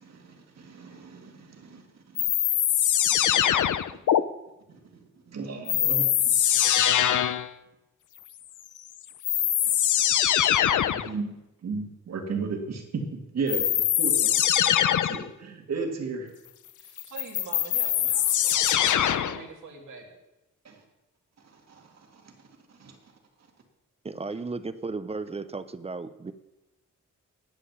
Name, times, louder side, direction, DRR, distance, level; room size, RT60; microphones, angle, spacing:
voice 1, 0.0-1.8 2.1-2.2 3.1-3.8 4.7-6.3 10.9-11.3 11.6-16.3 20.6-20.8 21.7-21.9 22.1-22.2 22.8-22.9, right 4 dB, 55° right, 2 dB, 2.0 m, -35 dB
sound 1, 2.2-4.2 5.7-7.5 8.8-8.9 9.2-11.1 13.5-15.3 17.0-19.4, left 11 dB, 75° left, 0.6 m, -23 dB
voice 2, 16.8-20.2, right 4 dB, 75° right, 0 dB, 2.8 m, -45 dB
voice 3, 24.0-26.3, right 3 dB, 20° right, 13 dB, 0.5 m, -34 dB
10.5 x 7.5 x 9.3 m, 0.98 s
wide cardioid pair, 175°, 31 cm